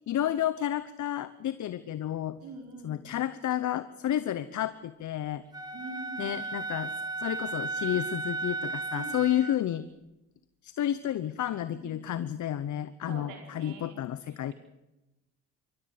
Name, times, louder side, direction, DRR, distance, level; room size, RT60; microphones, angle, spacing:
voice 1, 0.1-2.4 2.8-5.4 6.2-6.9 7.2-9.8 10.6-14.5, left 11 dB, 55° left, 14 dB, 1.0 m, -31 dB
voice 2, 2.4-3.0 5.7-6.4 8.9-9.3 11.7-12.2 13.0-14.0 14.3-14.5, right 3 dB, 80° right, 3 dB, 4.3 m, -45 dB
Wind instrument woodwind instrument, 5.5-9.6, right 3 dB, 10° right, 4.5 m, -35 dB
26.5 x 14.5 x 7.9 m, 0.99 s
supercardioid pair, 60°, 34 cm